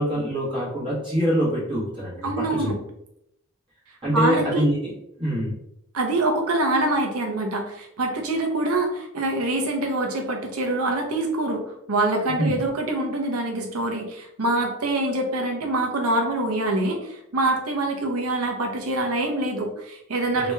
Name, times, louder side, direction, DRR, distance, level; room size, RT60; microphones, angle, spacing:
voice 1, 0.0-2.7 4.0-4.9 5.2-5.5 12.4-12.5 20.3-20.4, equal, 25° right, -9 dB, 1.4 m, -24 dB
voice 2, 2.2-2.8 4.1-4.7 5.9-20.5, right 2 dB, 80° right, 2 dB, 0.8 m, -25 dB
3.0 x 3.0 x 3.3 m, 0.79 s
head